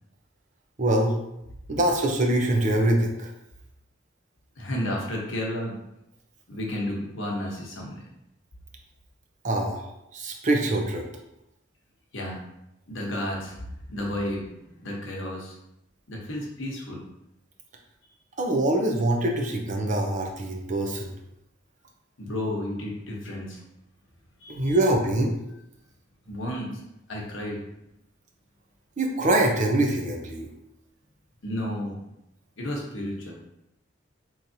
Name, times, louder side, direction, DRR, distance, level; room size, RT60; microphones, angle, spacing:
voice 1, 0.8-1.1 1.7-3.3 9.4-11.0 18.4-21.1 24.5-25.3 29.0-30.5, right 1 dB, 40° right, 2 dB, 0.5 m, -24 dB
voice 2, 4.6-5.8 6.5-8.0 12.1-12.4 12.9-13.6 13.9-14.5 14.8-15.5 16.1-17.0 22.2-23.6 24.4-24.8 26.3-26.7 27.1-27.6 31.4-32.0 32.6-33.3, left 1 dB, 80° left, -2 dB, 1.0 m, -32 dB
4.0 x 3.0 x 2.7 m, 0.85 s
head